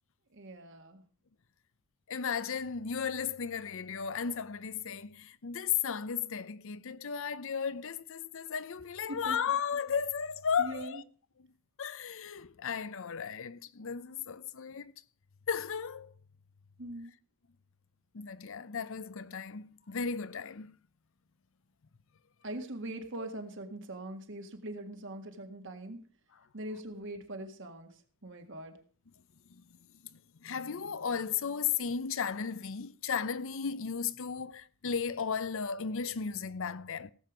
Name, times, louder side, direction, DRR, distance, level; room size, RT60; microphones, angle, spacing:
voice 1, 0.3-1.0 9.1-9.4 10.6-11.0 16.8-17.1 22.4-26.0 26.5-27.9 28.2-28.8, right 1 dB, 60° right, 1.9 m, -42 dB
voice 2, 2.1-11.0 11.8-14.9 15.5-16.1 18.1-20.8 29.5-29.6 30.1-37.1, left 6 dB, 65° left, 0.7 m, -35 dB
17.0 x 7.8 x 5.1 m
head